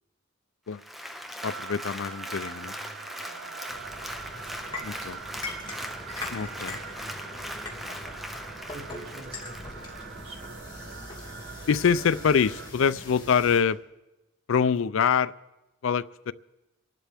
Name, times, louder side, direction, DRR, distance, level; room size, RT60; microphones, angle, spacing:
Applause, 0.7-10.5 10.9-11.0, equal, ahead, 0.5 m, -40 dB
voice 1, 1.4-2.7 4.8-5.2 6.3-6.8 11.7-13.8 14.5-15.3 15.8-16.3, left 6 dB, 70° left, 16 dB, 0.4 m, -25 dB
sound 1, 1.4-12.7, right 8 dB, 55° right, 0.4 m, -44 dB
voice 2, 2.3-3.6 7.0-10.4, right 2 dB, 30° right, 3 dB, 1.3 m, -49 dB
sound 2, 3.7-13.6, left 2 dB, 20° left, 2.2 m, -41 dB
25.0 x 11.5 x 3.5 m, 0.99 s
head